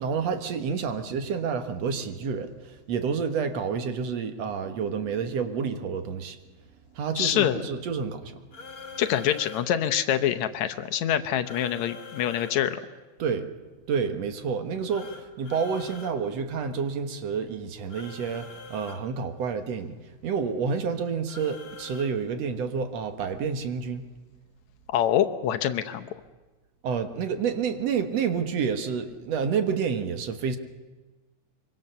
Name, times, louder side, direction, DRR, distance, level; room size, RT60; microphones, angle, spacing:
voice 1, 0.0-6.4 6.9-9.0 13.2-13.5 13.9-19.9 20.2-24.1 26.8-30.6, right 6 dB, 65° right, 8 dB, 2.3 m, -29 dB
voice 2, 7.2-7.6 9.0-12.8 24.9-26.1, left 10 dB, 75° left, 8 dB, 2.2 m, -25 dB
sound 1, 8.5-9.7 11.4-12.5 14.9-16.2 17.9-19.0 21.3-22.1, left 5 dB, 45° left, 2.8 m, -43 dB
24.5 x 24.0 x 6.8 m, 1.2 s
omnidirectional pair, 3.4 m